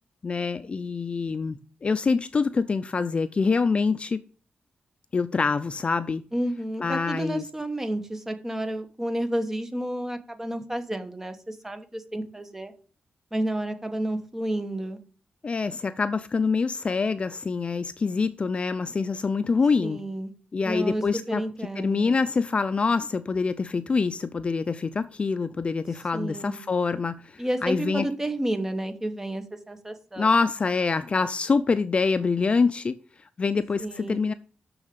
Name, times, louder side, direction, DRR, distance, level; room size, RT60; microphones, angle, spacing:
voice 1, 0.2-4.2 5.1-6.2 6.8-7.4 15.4-20.0 20.5-21.4 21.8-28.1 30.2-32.9 33.4-34.3, left 4 dB, 35° left, 0.4 m, -25 dB
voice 2, 6.3-12.7 13.3-15.0 19.8-20.3 20.6-22.2 26.1-26.6 27.4-30.3 33.8-34.2, right 1 dB, 10° right, 1.2 m, -31 dB
7.0 x 6.4 x 6.8 m
wide cardioid pair, 150°, 3 cm